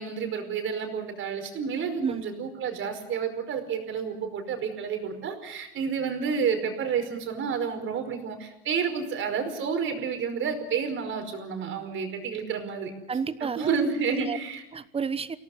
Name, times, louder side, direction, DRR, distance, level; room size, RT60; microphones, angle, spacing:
voice 1, 0.0-12.9 13.4-14.6, right 6 dB, 40° right, 5 dB, 5.1 m, -30 dB
voice 2, 13.1-13.8 14.1-14.4 14.7-15.4, right 6 dB, 20° right, 15 dB, 1.1 m, -30 dB
24.5 x 17.5 x 7.9 m, 0.89 s
supercardioid pair, 110°, 29 cm